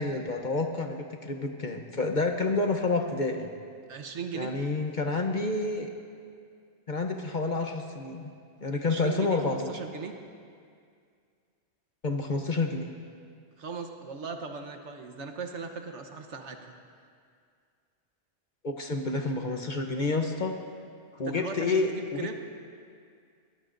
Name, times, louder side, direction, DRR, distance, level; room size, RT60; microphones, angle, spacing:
voice 1, 0.0-3.5 4.3-5.9 6.9-8.3 8.6-9.7 12.0-12.9 18.6-20.6 21.2-22.3, left 3 dB, 45° left, 4 dB, 0.9 m, -29 dB
voice 2, 3.9-4.5 8.8-10.1 13.6-16.7 21.2-22.3, right 5 dB, 70° right, 5 dB, 1.3 m, -38 dB
22.0 x 17.5 x 2.6 m, 2.2 s
omnidirectional pair, 1.3 m